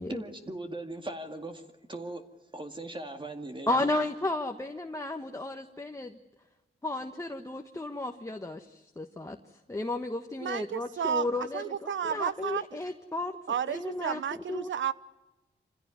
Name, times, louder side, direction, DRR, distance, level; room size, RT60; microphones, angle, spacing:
voice 1, 0.1-2.2 2.5-3.8, right 2 dB, 25° right, 2.1 m, -39 dB
voice 2, 3.7-6.2 6.8-9.4 9.7-13.4 13.7-14.7, left 2 dB, 15° left, 1.4 m, -33 dB
voice 3, 10.4-11.3 11.5-12.8 13.5-14.9, right 8 dB, 80° right, 0.9 m, -32 dB
26.5 x 16.0 x 9.7 m
wide cardioid pair, 95°, 19 cm